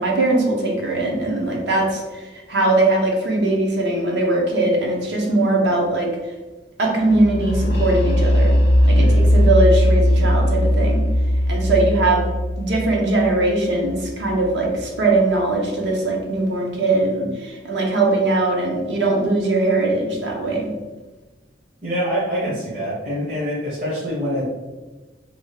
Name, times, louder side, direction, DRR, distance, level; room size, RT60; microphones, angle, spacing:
voice 1, 0.0-6.1 6.8-8.5 8.8-11.0 11.5-12.3 12.6-20.7, right 2 dB, 75° right, 0 dB, 0.7 m, -20 dB
sound 1, 7.1-14.8, equal, 60° left, 0.4 m, -18 dB
voice 2, 8.9-9.2 21.8-24.5, equal, 40° right, -9 dB, 0.8 m, -25 dB
2.8 x 2.3 x 3.2 m, 1.2 s
head